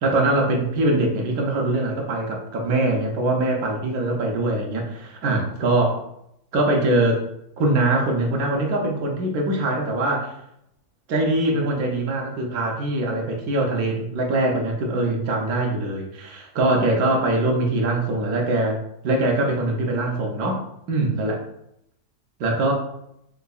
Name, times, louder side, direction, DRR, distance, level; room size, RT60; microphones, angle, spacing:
voice 1, 0.0-6.0 6.5-7.2 7.6-10.3 11.1-18.8 19.0-21.4 22.4-22.7, right 2 dB, 80° right, 1 dB, 1.1 m, -22 dB
3.7 x 3.1 x 2.2 m, 0.77 s
omnidirectional pair, 1.6 m